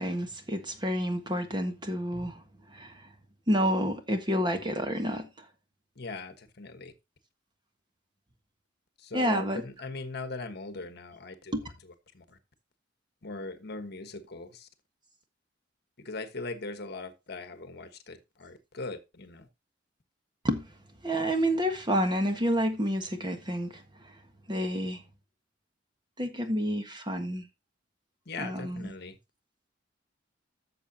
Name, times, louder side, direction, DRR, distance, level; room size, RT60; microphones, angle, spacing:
voice 1, 0.0-2.4 2.7-2.9 3.5-5.3 9.1-9.6 11.5-11.6 20.4-20.7 21.0-23.8 24.5-25.0 26.2-27.4 28.4-28.9, equal, 25° right, 1.5 m, -29 dB
voice 2, 6.0-6.9 9.0-11.5 12.1-12.2 13.2-14.7 16.0-19.5 28.3-29.1, left 3 dB, 60° left, 1.3 m, -40 dB
13.5 x 6.9 x 2.8 m
head